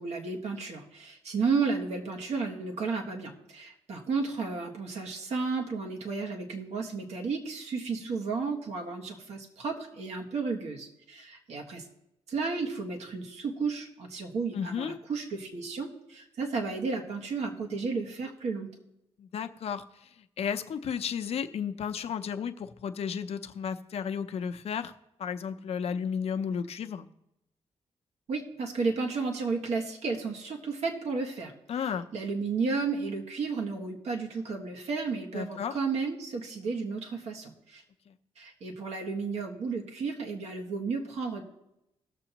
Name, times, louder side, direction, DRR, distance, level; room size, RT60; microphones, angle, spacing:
voice 1, 0.0-11.8 12.3-18.7 28.3-37.8 38.4-41.4, right 4 dB, 75° right, 1 dB, 1.6 m, -33 dB
voice 2, 14.5-15.0 19.2-19.8 20.4-24.9 25.2-27.1 31.7-32.1 35.3-35.7, left 7 dB, 65° left, 8 dB, 0.6 m, -33 dB
18.5 x 6.9 x 3.0 m, 0.85 s
cardioid pair, 95°, 11 cm